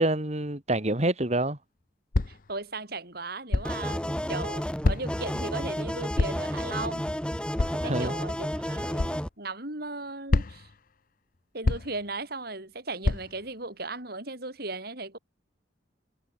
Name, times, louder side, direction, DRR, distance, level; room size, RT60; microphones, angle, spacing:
voice 1, 0.0-1.6 7.7-8.1, right 1 dB, 35° right, 2.6 m, -27 dB
sound 1, 2.1-2.5 3.5-3.8 4.8-5.3 6.2-6.5 7.6-7.9 9.0-9.2 10.3-10.8 11.6-12.1 13.0-13.5, left 2 dB, 50° left, 0.7 m, -27 dB
voice 2, 2.3-7.1 7.8-10.7 11.5-15.2, right 3 dB, 55° right, 6.6 m, -37 dB
sound 2, 3.6-9.3, equal, 5° left, 3.7 m, -31 dB
head